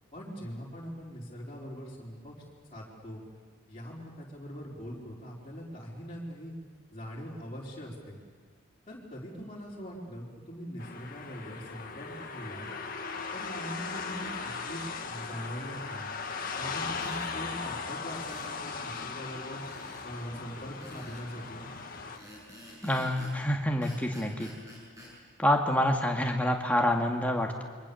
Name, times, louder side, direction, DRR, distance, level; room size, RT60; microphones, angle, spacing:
voice 1, 0.1-2.4 2.7-3.2 3.7-6.5 6.9-8.2 8.9-12.7 13.3-16.1 16.6-19.6 20.0-21.7, equal, 25° left, -6 dB, 4.7 m, -42 dB
sound 1, 10.8-22.2, left 4 dB, 40° left, 1.9 m, -38 dB
sound 2, 16.9-17.3 18.1-18.6 19.6-20.1 20.8-21.3 22.1-23.4 23.8-25.1, equal, 15° right, 7.5 m, -50 dB
voice 2, 22.8-24.5 25.4-27.6, left 1 dB, 5° left, 1 dB, 2.2 m, -27 dB
28.5 x 24.0 x 7.2 m, 1.5 s
head